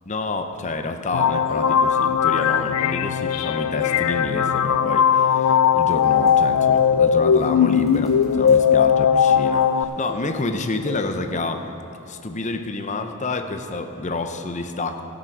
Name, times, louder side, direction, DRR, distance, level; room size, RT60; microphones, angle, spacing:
voice 1, 0.1-11.6 12.1-15.0, left 2 dB, 35° left, 6 dB, 0.7 m, -29 dB
sound 1, 1.1-9.8, left 7 dB, 85° left, 0.4 m, -19 dB
sound 2, 1.2-2.0 2.3-3.4 3.8-4.1 4.5-4.8 5.4-5.5 5.9-9.7 10.0-10.6 10.9-11.1 11.4-11.7, left 4 dB, ahead, 2.9 m, -38 dB
15.0 x 7.5 x 6.0 m, 2.8 s
head